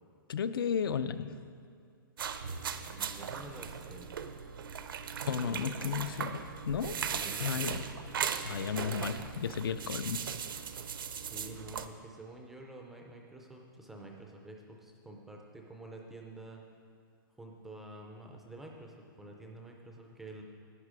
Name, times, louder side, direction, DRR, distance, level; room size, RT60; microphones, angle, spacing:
voice 1, 0.3-1.4 5.3-7.1 7.4-7.8 8.4-10.3, left 7 dB, 85° left, 12 dB, 0.6 m, -34 dB
sound 1, 2.2-11.9, right 7 dB, 75° right, 0.7 m, -38 dB
voice 2, 2.9-4.1 5.3-6.2 7.1-7.8 11.1-16.6 17.4-20.4, right 1 dB, ahead, 1 dB, 0.4 m, -48 dB
11.5 x 9.4 x 4.8 m, 2.4 s
hypercardioid pair, 180°, 12 cm